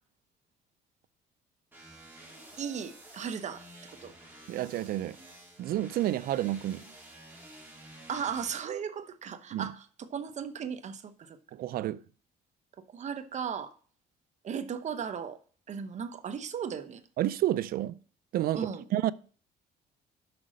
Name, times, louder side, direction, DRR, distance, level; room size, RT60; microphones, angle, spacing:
sound 1, 1.7-8.6, right 1 dB, 10° right, 3.4 m, -51 dB
voice 1, 2.6-3.6 4.0-4.1 8.1-11.4 12.9-13.7 14.4-15.4 15.7-17.0 18.5-18.8, right 7 dB, 45° right, 0.9 m, -36 dB
voice 2, 4.5-5.2 5.6-6.8 9.5-9.7 11.5-12.0 17.2-18.0 18.3-19.1, right 13 dB, 60° right, 0.4 m, -30 dB
6.1 x 6.0 x 6.4 m
cardioid pair, 110°, 17 cm